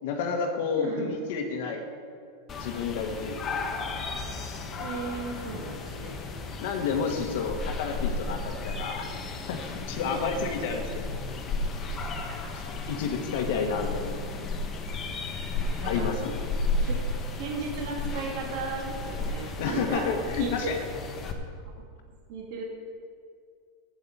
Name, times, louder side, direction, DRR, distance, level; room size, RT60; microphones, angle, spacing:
voice 1, 0.0-1.8 2.6-3.6 6.6-9.1 9.5-11.1 12.5-12.6 12.9-14.3 15.8-16.4 19.6-20.8, left 5 dB, 65° left, 4 dB, 1.4 m, -30 dB
voice 2, 0.8-1.1 4.8-6.1 10.0-10.5 12.3-12.4 15.5-16.1 16.8-17.0 17.4-20.1 20.4-20.5 22.3-22.6, right 4 dB, 55° right, -2 dB, 2.6 m, -35 dB
sound 1, 2.5-21.3, left 3 dB, 25° left, 1.3 m, -33 dB
9.7 x 8.7 x 7.4 m, 2.2 s
supercardioid pair, 140°, 0 cm